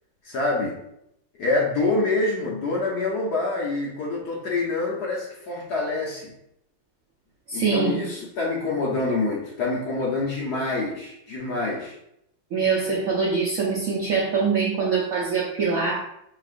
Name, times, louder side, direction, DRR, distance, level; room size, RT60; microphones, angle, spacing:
voice 1, 0.2-0.8 1.4-6.3 7.5-11.9, left 3 dB, 60° left, -3 dB, 1.1 m, -26 dB
voice 2, 7.5-8.1 12.5-16.0, right 5 dB, 70° right, -5 dB, 0.8 m, -24 dB
5.2 x 3.0 x 2.5 m, 0.77 s
omnidirectional pair, 2.3 m